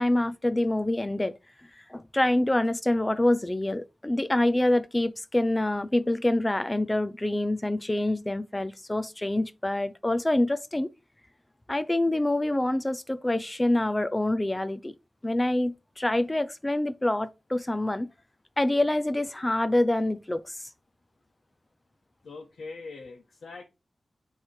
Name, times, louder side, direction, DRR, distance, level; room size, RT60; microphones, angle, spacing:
voice 1, 0.0-1.4 1.9-10.9 11.7-15.0 15.2-18.1 18.6-20.6, left 1 dB, 15° left, 0.5 m, -26 dB
voice 2, 22.2-23.6, left 3 dB, 85° left, 1.2 m, -42 dB
9.5 x 3.3 x 4.4 m
wide cardioid pair, 150°, 0 cm